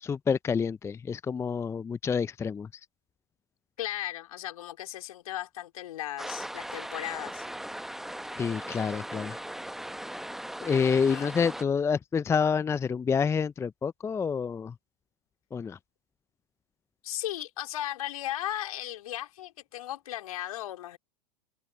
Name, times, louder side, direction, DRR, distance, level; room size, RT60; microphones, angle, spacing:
voice 1, 0.0-2.7 8.3-9.4 10.6-14.7 15.5-15.8, left 6 dB, 15° left, 0.6 m, -28 dB
voice 2, 3.8-7.5 11.0-11.3 17.0-21.0, left 13 dB, 65° left, 3.9 m, -36 dB
sound 1, 6.2-11.6, right 1 dB, ahead, 1.2 m, -39 dB
open air
figure-of-eight pair, 100°, 20 cm